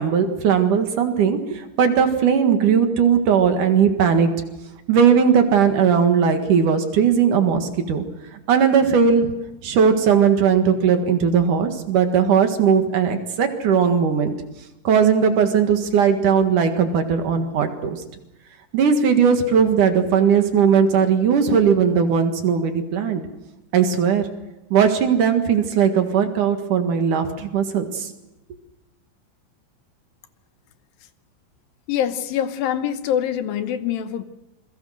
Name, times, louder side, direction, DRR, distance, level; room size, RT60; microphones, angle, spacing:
voice 1, 0.0-4.3 4.9-8.0 8.5-9.3 9.6-14.3 14.8-18.0 18.7-23.2 23.7-24.3 24.7-28.1, right 7 dB, 60° right, 6 dB, 3.1 m, -18 dB
voice 2, 31.9-34.2, left 9 dB, 75° left, 11 dB, 2.7 m, -24 dB
28.0 x 22.0 x 6.5 m, 0.96 s
omnidirectional pair, 4.3 m